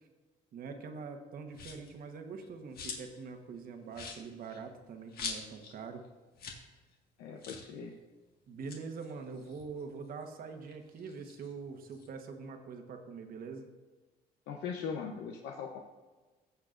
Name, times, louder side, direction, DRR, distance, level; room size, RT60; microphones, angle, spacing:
voice 1, 0.5-6.0 8.5-13.7, right 5 dB, 60° right, 5 dB, 1.2 m, -44 dB
sound 1, 1.5-2.0 2.4-3.2 3.5-3.6 3.9-5.8 6.0-6.1 6.3-6.7 6.9-7.0 7.4-7.7 8.5-10.2 10.6-12.1, left 5 dB, 65° left, 1.7 m, -44 dB
voice 2, 7.2-8.0 14.5-15.8, left 6 dB, 80° left, 2 dB, 0.8 m, -40 dB
15.0 x 7.3 x 2.5 m, 1.3 s
cardioid pair, 110°, 17 cm